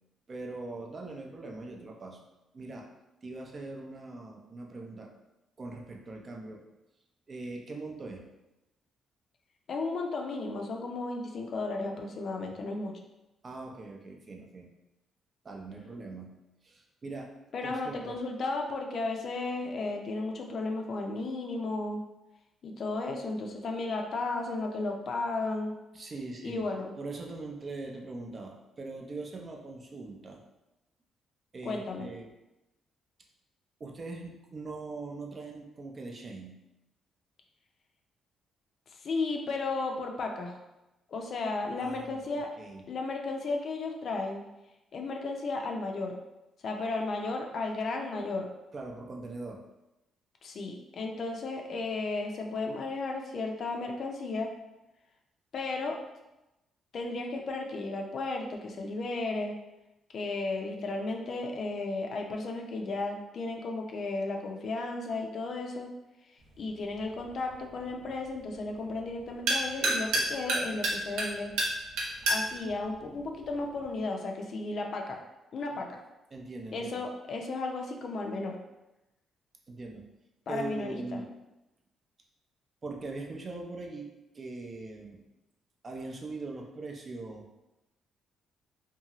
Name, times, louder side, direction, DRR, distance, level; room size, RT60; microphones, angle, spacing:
voice 1, 0.3-2.2 2.5-2.9 3.2-5.1 5.6-6.6 7.3-8.3 13.4-14.7 15.4-16.3 16.6-17.3 17.6-18.2 25.9-26.7 27.0-30.4 31.5-32.3 33.8-36.6 41.8-42.2 42.6-42.8 48.7-49.6 76.3-77.0 79.7-80.1 80.5-81.3 82.8-84.1 84.3-85.2 85.8-87.5, right 3 dB, 35° right, 1 dB, 0.4 m, -41 dB
voice 2, 9.7-12.9 17.5-22.0 22.6-25.7 26.4-26.9 31.6-32.1 39.0-40.6 41.1-42.5 42.9-44.4 44.9-46.2 46.6-48.5 50.4-54.5 55.5-56.0 56.9-59.5 60.1-65.9 66.6-71.5 72.3-75.2 75.5-76.0 76.7-78.6 80.5-81.2, left 3 dB, 55° left, 2 dB, 0.4 m, -34 dB
sound 1, 66.4-74.0, right 1 dB, 90° right, 0.6 m, -33 dB
2.6 x 2.3 x 2.9 m, 0.96 s
cardioid pair, 90°, 0 cm